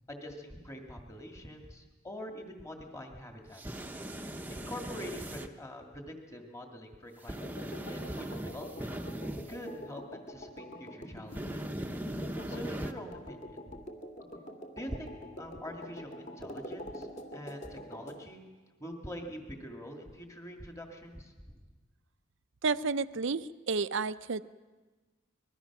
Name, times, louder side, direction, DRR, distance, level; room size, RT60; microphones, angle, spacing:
voice 1, 0.1-3.8 4.5-7.4 7.9-8.9 9.5-11.7 12.5-13.8 14.7-18.4 18.8-21.3, equal, 15° left, 2 dB, 2.1 m, -44 dB
sound 1, 3.5-5.5 7.2-9.6 11.3-12.9, right 1 dB, 10° right, 0.9 m, -39 dB
sound 2, 7.4-18.2, equal, 35° left, 2.2 m, -45 dB
voice 2, 22.6-24.4, right 4 dB, 60° right, 15 dB, 0.6 m, -31 dB
25.0 x 21.0 x 6.0 m, 1.3 s
head